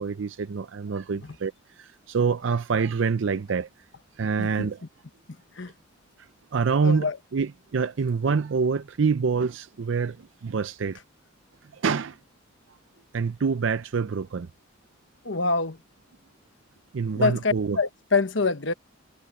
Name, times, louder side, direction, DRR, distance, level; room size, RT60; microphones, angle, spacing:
voice 1, 0.0-3.7 4.2-4.8 6.5-11.0 11.7-12.2 13.1-14.5 16.9-17.8, right 5 dB, 65° right, 0.5 m, -26 dB
voice 2, 6.8-7.2 15.2-15.8 17.2-18.7, left 4 dB, 60° left, 1.2 m, -25 dB
head